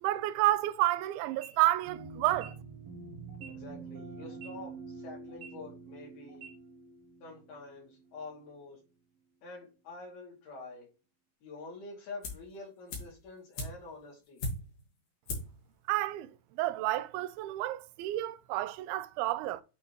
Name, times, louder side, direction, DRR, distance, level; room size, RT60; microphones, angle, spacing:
voice 1, 0.0-2.5 15.9-16.3 16.6-19.6, right 15 dB, 85° right, 2.4 m, -30 dB
sound 1, 1.3-1.5 2.3-2.5 3.3-3.5 4.3-4.5 5.3-5.5 6.3-6.5, right 6 dB, 45° right, 2.2 m, -48 dB
sound 2, 1.9-8.4, right 4 dB, 70° right, 1.5 m, -47 dB
voice 2, 3.5-6.5 7.2-8.8 9.4-10.9 11.4-14.4, left 3 dB, 80° left, 4.4 m, -47 dB
sound 3, 12.2-12.6 12.9-14.9 15.3-15.6 15.9-16.0, left 2 dB, 60° left, 3.2 m, -38 dB
9.0 x 3.6 x 3.1 m
omnidirectional pair, 4.4 m